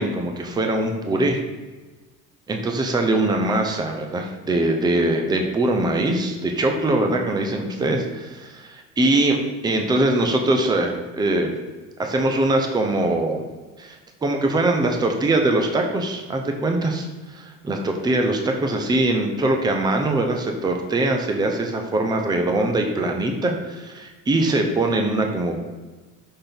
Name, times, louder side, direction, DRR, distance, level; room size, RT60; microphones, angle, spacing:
voice 1, 0.0-1.4 2.5-9.4 9.6-11.5 12.0-13.4 13.8-25.6, right 2 dB, 15° right, 3 dB, 0.6 m, -22 dB
5.9 x 4.2 x 5.1 m, 1.2 s
cardioid pair, 155°, 32 cm